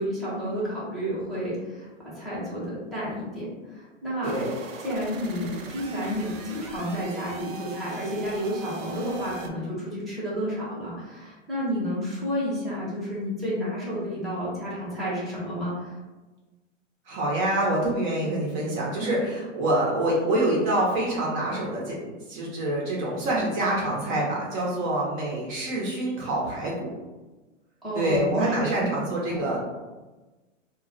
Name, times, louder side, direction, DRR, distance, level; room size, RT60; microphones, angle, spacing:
voice 1, 0.0-4.4 4.8-15.9 27.8-28.9 29.3-29.5, equal, ahead, -10 dB, 0.8 m, -31 dB
voice 2, 4.2-4.5 17.1-22.0 22.3-26.9 27.9-29.6, right 1 dB, 40° right, -4 dB, 0.7 m, -26 dB
sound 1, 4.2-9.5, right 3 dB, 85° right, 0.6 m, -41 dB
2.3 x 2.0 x 3.8 m, 1.2 s
hypercardioid pair, 130°, 38 cm